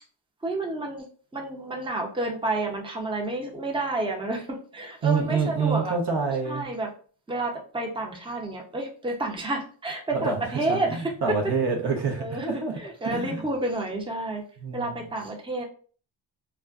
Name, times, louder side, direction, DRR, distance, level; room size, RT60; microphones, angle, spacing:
voice 1, 0.4-1.1 1.3-5.9 6.5-6.9 7.3-11.1 12.2-14.4 14.7-15.6, right 2 dB, 10° right, 1 dB, 0.7 m, -30 dB
voice 2, 5.0-6.7 10.1-10.4 10.7-13.4 14.6-14.9, right 4 dB, 55° right, 2 dB, 0.8 m, -27 dB
2.4 x 2.1 x 3.5 m, 0.42 s
cardioid pair, 65°, 48 cm